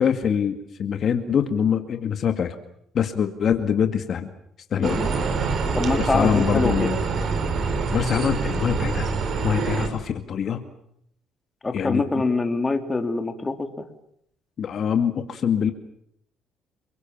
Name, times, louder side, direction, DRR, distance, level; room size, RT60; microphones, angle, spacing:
voice 1, 0.0-2.6 2.9-4.3 4.7-5.0 6.0-7.0 7.9-9.1 9.4-10.6 11.7-12.1 14.6-15.7, left 8 dB, 50° left, 7 dB, 2.2 m, -24 dB
voice 2, 4.8-5.1 5.7-6.9 11.6-13.8, left 3 dB, 20° left, 6 dB, 3.2 m, -25 dB
sound 1, 4.8-9.9, right 4 dB, 50° right, 5.0 m, -25 dB
29.5 x 23.0 x 7.4 m, 0.71 s
cardioid pair, 105°, 0 cm